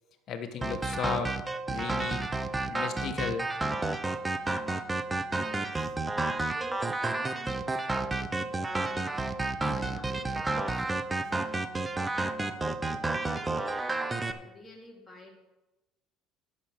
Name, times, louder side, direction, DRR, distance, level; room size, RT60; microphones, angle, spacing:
voice 1, 0.3-1.3 1.7-2.3 2.7-3.5, left 7 dB, 45° left, 6 dB, 1.2 m, -35 dB
sound 1, 0.6-14.3, right 2 dB, 10° right, 0.6 m, -31 dB
voice 2, 5.4-15.3, left 1 dB, 10° left, -3 dB, 2.6 m, -50 dB
11.0 x 5.9 x 6.4 m, 1.0 s
cardioid pair, 145°, 0 cm